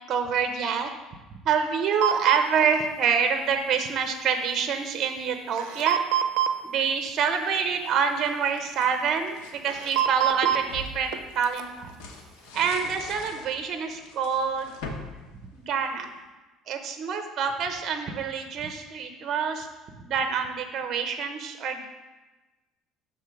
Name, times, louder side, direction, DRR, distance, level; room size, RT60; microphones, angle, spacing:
voice 1, 0.1-0.9 1.4-6.0 6.6-12.0 12.5-14.7 15.5-16.1 16.7-19.7 19.9-21.8, right 6 dB, 45° right, 6 dB, 0.7 m, -27 dB
sound 1, 2.0-2.4 5.6-6.5 8.2-8.3 9.7-10.6 11.1-11.2 11.4-11.6, right 11 dB, 80° right, 0.5 m, -24 dB
sound 2, 7.6-9.6 10.1-16.2, left 3 dB, 85° left, 1.0 m, -43 dB
6.5 x 3.8 x 5.9 m, 1.1 s
cardioid pair, 125°, 0 cm